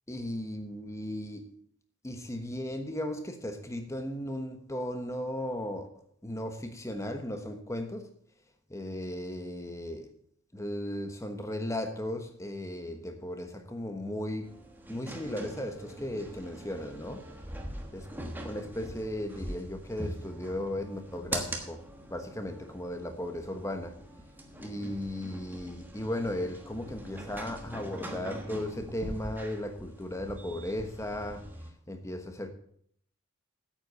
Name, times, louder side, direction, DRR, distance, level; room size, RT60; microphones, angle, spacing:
voice 1, 0.1-1.5 2.0-8.1 8.7-10.1 10.5-14.6 14.9-17.2 17.9-18.1 18.4-21.8 22.1-24.0 24.6-32.5, left 1 dB, 15° left, 6 dB, 1.2 m, -36 dB
sound 1, 14.4-31.7, right 1 dB, 10° right, 1.2 m, -42 dB
9.1 x 8.1 x 6.8 m, 0.64 s
head